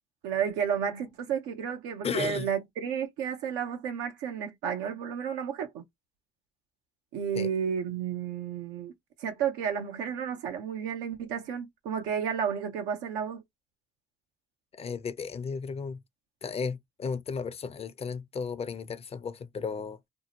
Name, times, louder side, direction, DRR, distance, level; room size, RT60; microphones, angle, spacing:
voice 1, 0.2-5.8 7.1-8.9 9.2-13.4, right 8 dB, 90° right, 0.5 m, -32 dB
voice 2, 2.0-2.5 7.4-7.5 14.7-16.0 16.4-20.0, left 5 dB, 40° left, 0.5 m, -34 dB
2.6 x 2.0 x 2.8 m
supercardioid pair, 55°, 16 cm